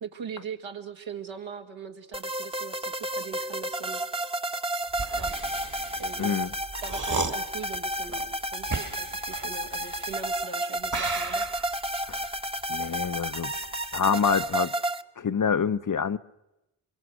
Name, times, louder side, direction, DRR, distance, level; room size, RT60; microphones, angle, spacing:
voice 1, 0.0-4.0 5.1-5.4 6.0-6.4 6.8-11.9, right 6 dB, 80° right, 1.9 m, -41 dB
sound 1, 2.1-15.0, right 1 dB, 10° right, 1.0 m, -32 dB
sound 2, 4.9-10.4 10.8-13.7 14.0-14.5, right 4 dB, 40° right, 1.7 m, -36 dB
voice 2, 6.2-6.5 12.1-12.3 12.7-13.5 13.9-14.7 15.2-16.2, left 6 dB, 40° left, 0.8 m, -26 dB
23.5 x 23.5 x 6.3 m
cardioid pair, 50°, 46 cm